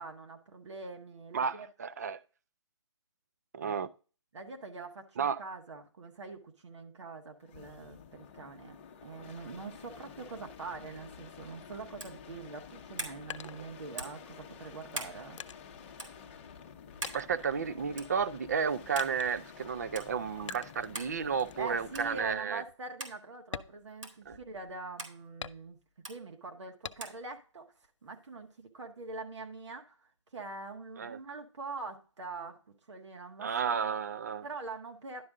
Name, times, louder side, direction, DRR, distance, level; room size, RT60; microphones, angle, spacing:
voice 1, 0.0-1.7 3.6-3.8 4.3-8.8 9.0-15.4 21.6-25.8 26.1-27.7 28.0-32.6 32.9-34.0 34.4-35.2, right 3 dB, 65° right, 1.5 m, -44 dB
voice 2, 1.3-2.2 3.5-3.9 5.2-5.4 17.1-22.6 24.3-24.4 31.0-31.2 33.4-34.4, right 6 dB, 35° right, 0.5 m, -32 dB
sound 1, 7.4-22.5 24.2-24.7, left 7 dB, 25° left, 0.9 m, -51 dB
sound 2, 12.0-12.2 13.0-13.2 14.0-14.2 14.9-15.2 16.0-16.1 17.0-17.2 18.0-18.2 19.0-19.1 20.0-20.1 20.9-21.2 21.9-22.2 23.0-23.2 24.0-24.2 25.0-25.2 26.0-26.2 27.0-27.2, right 3 dB, 85° right, 2.5 m, -41 dB
sound 3, 13.3-14.3 14.9-16.7 17.0-18.2 19.0-19.6 20.5-21.0 21.4-21.7 22.1-22.2 22.6-22.8 23.4-24.6 25.4-26.1 26.8-27.4 27.8-28.6, left 7 dB, 75° left, 0.5 m, -46 dB
11.0 x 5.2 x 3.6 m
hypercardioid pair, 170°, 16 cm